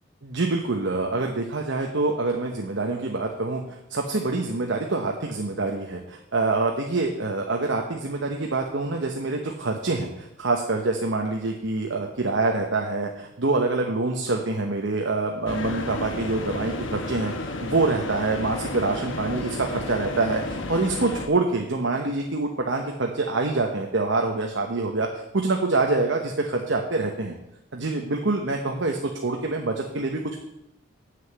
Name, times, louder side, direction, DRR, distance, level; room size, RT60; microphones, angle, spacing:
voice 1, 0.2-27.3 27.7-30.4, right 3 dB, 70° right, 2 dB, 1.0 m, -26 dB
sound 1, 15.5-21.3, left 2 dB, 80° left, 1.1 m, -32 dB
7.8 x 6.5 x 8.0 m, 0.85 s
head